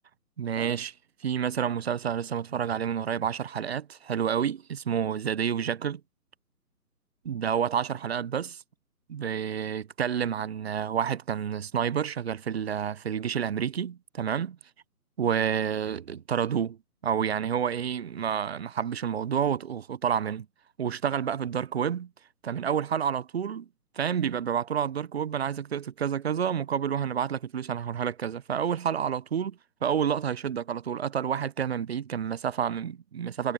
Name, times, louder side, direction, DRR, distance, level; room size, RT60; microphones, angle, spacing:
voice 1, 0.4-6.0 7.2-8.6 9.1-14.6 15.2-16.8 17.0-20.5 20.8-22.1 22.4-23.7 23.9-33.5, right 8 dB, 40° right, 0.9 m, -29 dB
figure-of-eight pair, 145°, 47 cm